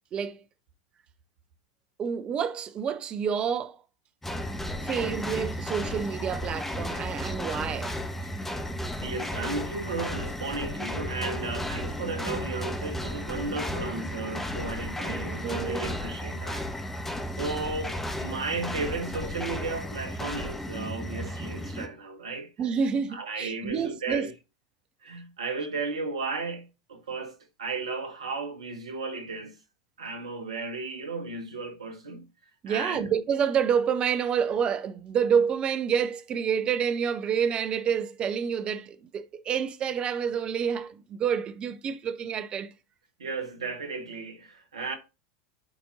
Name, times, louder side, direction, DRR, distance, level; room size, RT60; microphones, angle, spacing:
voice 1, 2.0-3.8 4.8-7.9 15.1-15.9 22.6-24.3 32.6-42.7, right 7 dB, 30° right, 0.8 m, -28 dB
sound 1, 4.2-21.9, left 1 dB, 10° left, 1.5 m, -34 dB
voice 2, 8.2-8.6 9.0-17.0 17.3-22.5 23.1-24.3 25.0-29.6 30.0-32.3 32.7-33.1 43.2-45.0, right 3 dB, 75° right, 1.4 m, -35 dB
12.0 x 4.3 x 2.7 m
figure-of-eight pair, 85°, 3 cm